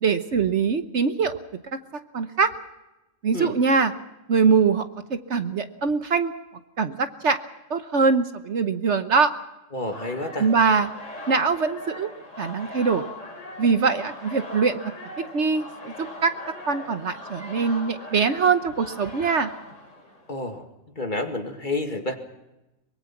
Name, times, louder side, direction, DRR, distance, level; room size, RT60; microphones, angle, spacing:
voice 1, 0.0-1.3 1.7-1.8 2.1-2.5 3.2-3.9 4.3-6.3 6.8-7.4 7.7-9.3 10.4-10.9 11.3-12.1 12.4-13.1 13.6-14.9 15.3-15.9 16.2-19.5, right 5 dB, 55° right, 10 dB, 1.2 m, -22 dB
voice 2, 9.7-10.5 20.3-20.7 21.0-22.2, left 2 dB, 35° left, 5 dB, 2.3 m, -29 dB
sound 1, 9.9-20.4, left 1 dB, 60° left, 5.5 m, -40 dB
23.5 x 22.5 x 5.9 m, 0.99 s
omnidirectional pair, 1.5 m